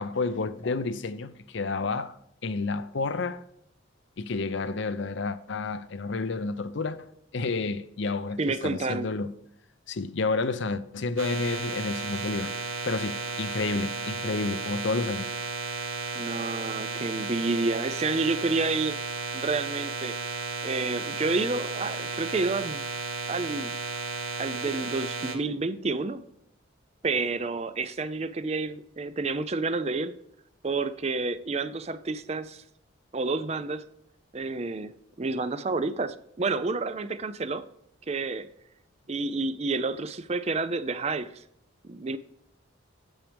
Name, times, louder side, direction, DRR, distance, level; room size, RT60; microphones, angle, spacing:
voice 1, 0.0-2.2 2.4-3.4 4.2-9.3 9.9-12.5 12.9-15.3, left 3 dB, 60° left, 0.6 m, -30 dB
voice 2, 8.4-9.1 16.2-19.0 19.3-20.2 20.6-22.9 23.3-23.7 24.4-26.2 27.0-30.1 30.6-32.6 33.1-33.9 34.3-37.7 38.1-38.5 39.1-41.4 41.8-42.2, right 3 dB, 30° right, 0.4 m, -29 dB
sound 1, 11.2-25.3, right 4 dB, 80° right, 1.5 m, -34 dB
9.2 x 8.8 x 3.4 m
head